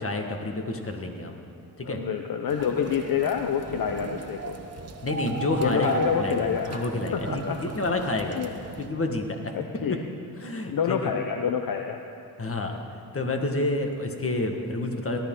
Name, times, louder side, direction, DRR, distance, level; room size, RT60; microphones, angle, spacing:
voice 1, 0.0-1.4 1.8-2.0 5.0-8.4 8.8-9.5 10.4-11.1 12.4-12.7 13.1-15.2, left 2 dB, 35° left, 3 dB, 1.6 m, -29 dB
voice 2, 1.8-4.6 5.6-6.8 7.1-7.6 8.3-8.5 9.5-10.0 10.7-12.0, left 7 dB, 60° left, 5 dB, 0.8 m, -27 dB
sound 1, 2.5-8.9, right 4 dB, 40° right, 1.1 m, -36 dB
18.5 x 12.0 x 3.8 m, 2.5 s
cardioid pair, 70°, 39 cm